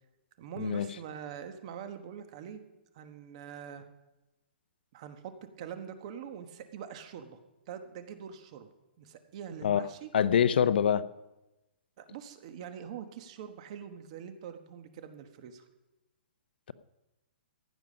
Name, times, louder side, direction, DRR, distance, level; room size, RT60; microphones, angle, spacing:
voice 1, 0.4-2.6 2.9-3.9 4.9-5.3 5.6-7.4 7.7-8.7 9.0-10.1 10.6-10.7 12.0-15.6, right 8 dB, 35° right, 8 dB, 1.2 m, -44 dB
voice 2, 10.1-11.0, left 8 dB, 65° left, 15 dB, 0.6 m, -25 dB
15.5 x 10.5 x 5.2 m, 1.0 s
hypercardioid pair, 170°, 6 cm